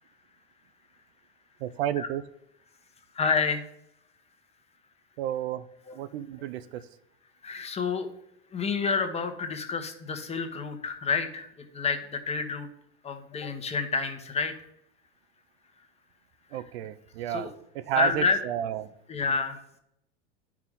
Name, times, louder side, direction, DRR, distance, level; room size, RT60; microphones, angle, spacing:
voice 1, 1.6-2.2 5.2-5.6 6.0-6.8 16.5-18.9, right 11 dB, 70° right, 14 dB, 0.6 m, -31 dB
voice 2, 3.1-3.6 5.9-6.0 7.4-8.1 8.5-12.7 13.0-14.7 16.5-16.6 17.3-17.5 17.9-18.4 19.1-19.8, left 5 dB, 20° left, 6 dB, 1.1 m, -29 dB
10.5 x 4.8 x 3.7 m, 0.77 s
hypercardioid pair, 105°, 32 cm